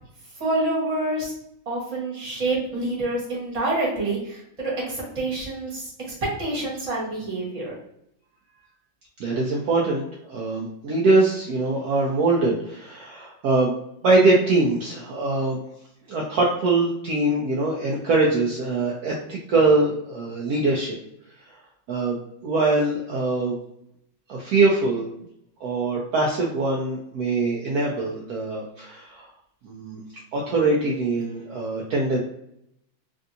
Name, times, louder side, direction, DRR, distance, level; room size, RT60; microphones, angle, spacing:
voice 1, 0.4-1.3 1.6-5.9 6.2-7.7, right 2 dB, 25° right, -5 dB, 1.0 m, -27 dB
voice 2, 9.2-13.7 14.0-15.6 16.1-21.0 21.5-21.6 21.9-22.2 22.4-23.6 24.3-25.1 25.6-29.3 29.6-30.0 30.3-32.2, right 2 dB, 75° right, -3 dB, 0.8 m, -23 dB
3.4 x 2.6 x 2.6 m, 0.75 s
omnidirectional pair, 2.2 m